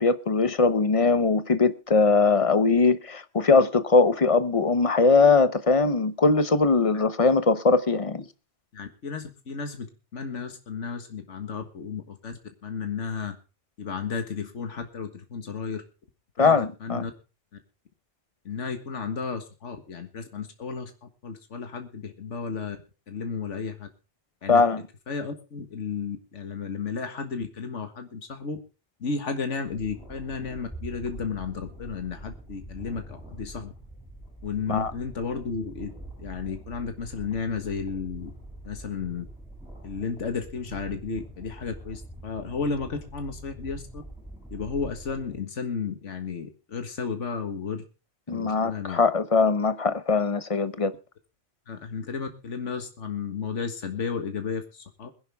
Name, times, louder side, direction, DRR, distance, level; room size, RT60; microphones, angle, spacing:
voice 1, 0.0-8.2 16.4-17.0 24.5-24.8 34.7-34.9 48.3-50.9, left 4 dB, 30° left, 0.8 m, -21 dB
voice 2, 8.7-13.4 13.8-15.8 16.4-17.1 18.5-22.8 23.1-23.9 24.4-24.6 25.1-28.6 29.0-33.7 34.4-35.9 36.2-38.3 38.6-39.3 39.8-44.0 44.5-47.8 48.3-49.0 51.7-55.1, left 5 dB, 80° left, 1.9 m, -33 dB
sound 1, 29.7-45.4, right 1 dB, 5° right, 7.7 m, -44 dB
22.0 x 10.5 x 3.5 m
omnidirectional pair, 1.2 m